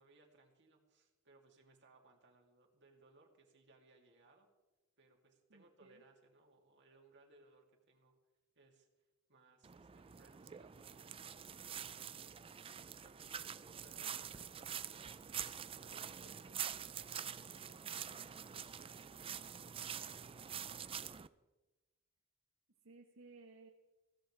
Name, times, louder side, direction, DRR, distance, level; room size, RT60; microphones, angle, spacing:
voice 1, 0.0-4.5 5.0-8.1 8.5-8.9 9.3-11.2 11.6-12.1 12.7-20.6, right 2 dB, 60° right, 1 dB, 2.8 m, -67 dB
voice 2, 5.5-6.0 22.8-23.7, right 3 dB, 80° right, 2 dB, 1.2 m, -59 dB
sound 1, 9.6-21.3, right 8 dB, 25° right, 0.4 m, -46 dB
21.0 x 16.5 x 3.4 m, 1.1 s
head